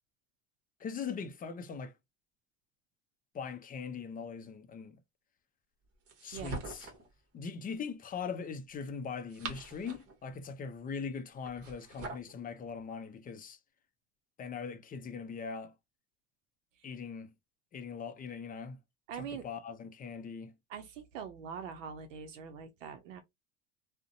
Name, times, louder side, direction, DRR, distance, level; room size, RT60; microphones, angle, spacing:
voice 1, 0.8-1.9 3.3-5.0 6.2-6.9 7.3-13.6 14.4-15.7 16.8-17.3 17.7-18.8 19.1-20.5, left 6 dB, 25° left, 0.5 m, -41 dB
sound 1, 6.1-7.1 9.0-10.2 11.4-12.3, right 3 dB, 40° right, 1.0 m, -43 dB
voice 2, 19.1-19.4 20.7-23.2, right 7 dB, 80° right, 0.6 m, -43 dB
2.5 x 2.1 x 2.6 m
hypercardioid pair, 90°, 37 cm